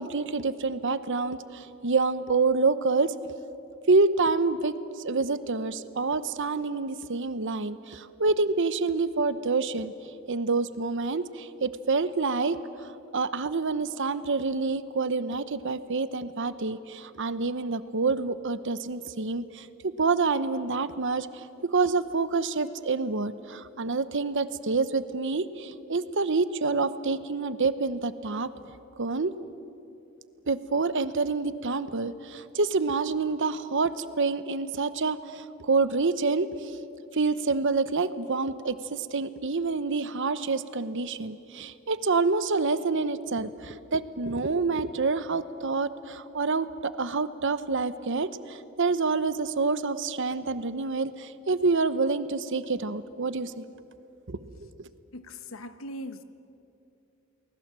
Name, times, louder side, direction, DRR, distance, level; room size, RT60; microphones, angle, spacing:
voice 1, 0.0-3.1 3.9-4.7 5.0-9.9 10.3-12.9 13.1-28.5 29.0-29.3 30.5-36.7 37.1-53.6 54.3-54.4, right 4 dB, 60° right, 13 dB, 0.9 m, -27 dB
voice 2, 55.1-56.2, left 1 dB, 70° left, 10 dB, 1.2 m, -40 dB
30.0 x 20.5 x 7.6 m, 2.8 s
head